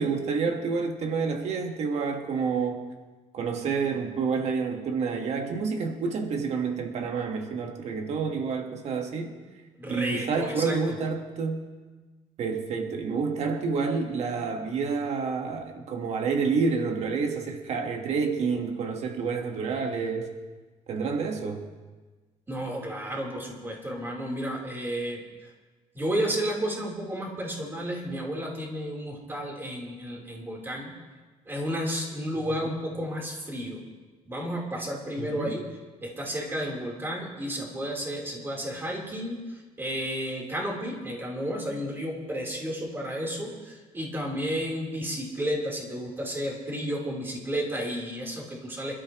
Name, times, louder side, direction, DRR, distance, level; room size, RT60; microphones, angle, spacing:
voice 1, 0.0-2.9 3.3-9.3 9.9-11.7 12.4-20.3 20.9-21.6 32.5-32.7 35.2-35.6, right 5 dB, 55° right, 4 dB, 1.5 m, -29 dB
voice 2, 9.8-11.0 22.5-25.2 25.9-30.9 31.5-33.8 34.3-35.6 36.0-48.9, equal, 15° right, -2 dB, 3.7 m, -32 dB
26.5 x 13.0 x 3.1 m, 1.3 s
cardioid pair, 145°, 13 cm